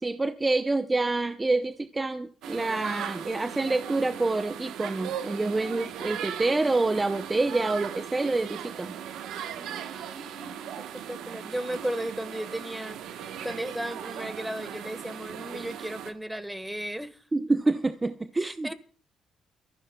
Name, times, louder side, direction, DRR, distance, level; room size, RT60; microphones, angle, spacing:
voice 1, 0.0-8.9 17.3-18.7, right 2 dB, 20° right, 0.6 m, -27 dB
sound 1, 2.4-16.1, right 9 dB, 85° right, 1.0 m, -38 dB
voice 2, 9.6-17.2 18.4-18.7, equal, 5° right, 1.5 m, -36 dB
28.5 x 14.5 x 2.2 m
cardioid pair, 90°, 0 cm